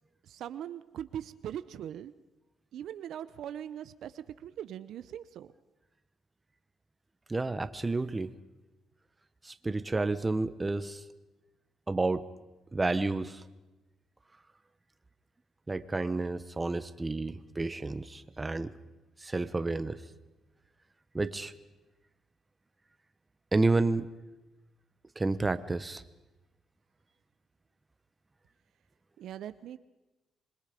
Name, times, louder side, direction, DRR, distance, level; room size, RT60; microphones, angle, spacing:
voice 1, 0.2-2.1 2.7-5.5 29.2-29.8, right 10 dB, 75° right, 13 dB, 0.8 m, -41 dB
voice 2, 7.3-8.3 9.4-11.0 11.9-12.2 12.7-13.4 15.7-18.7 19.2-20.0 21.1-21.5 23.5-24.1 25.2-26.0, right 3 dB, 20° right, 12 dB, 1.1 m, -30 dB
26.5 x 22.0 x 5.2 m, 1.1 s
cardioid pair, 90°, 0 cm